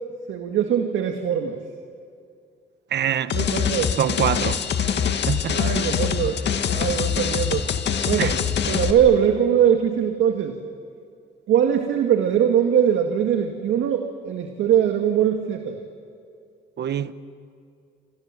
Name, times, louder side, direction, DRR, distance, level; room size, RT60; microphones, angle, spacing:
voice 1, 0.3-1.6 3.3-4.0 5.5-6.4 6.6-7.7 8.1-8.3 8.7-10.6 11.5-15.8, right 9 dB, 80° right, 1.9 m, -21 dB
voice 2, 2.9-3.4 4.0-4.6 5.3-5.7 8.2-8.4 16.8-17.1, right 9 dB, 60° right, 1.1 m, -24 dB
sound 1, 3.3-8.9, left 7 dB, 60° left, 2.0 m, -24 dB
28.5 x 27.5 x 7.5 m
cardioid pair, 90°, 20 cm